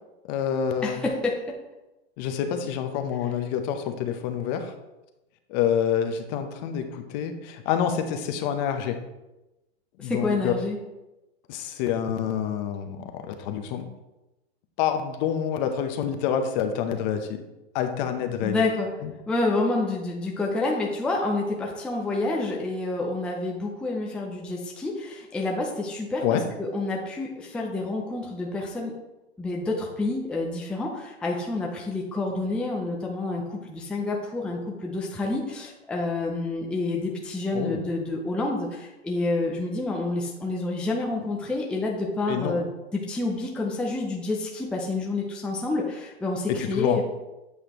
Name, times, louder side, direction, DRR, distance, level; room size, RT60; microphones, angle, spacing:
voice 1, 0.3-1.0 2.2-4.7 5.5-9.0 10.0-10.5 11.5-13.9 14.8-17.4 17.7-18.6 19.0-19.1 26.2-26.4 37.5-37.8 42.3-42.6 46.6-47.0, left 8 dB, 40° left, 7 dB, 0.8 m, -27 dB
voice 2, 0.8-1.4 10.0-10.8 18.4-18.9 19.3-28.9 29.4-47.0, left 2 dB, 5° left, -1 dB, 0.5 m, -28 dB
8.1 x 4.9 x 3.0 m, 0.99 s
hypercardioid pair, 135°, 33 cm